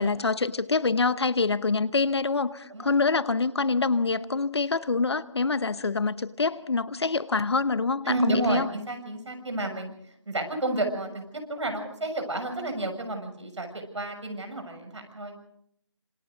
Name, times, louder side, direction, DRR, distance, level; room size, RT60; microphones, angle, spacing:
voice 1, 0.0-8.7, left 4 dB, 60° left, 16 dB, 1.0 m, -26 dB
voice 2, 8.0-9.9 10.2-11.2 11.5-15.4, right 2 dB, 70° right, 5 dB, 6.8 m, -31 dB
27.0 x 26.0 x 3.9 m, 0.71 s
figure-of-eight pair, 170°, 16 cm